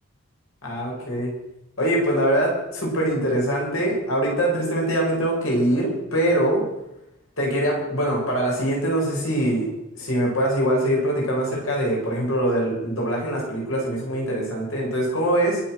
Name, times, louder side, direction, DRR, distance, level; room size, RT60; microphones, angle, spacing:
voice 1, 0.6-1.3 1.8-6.6 7.4-9.7 10.0-15.6, right 1 dB, 85° left, -3 dB, 7.2 m, -23 dB
24.5 x 8.1 x 6.5 m, 0.90 s
head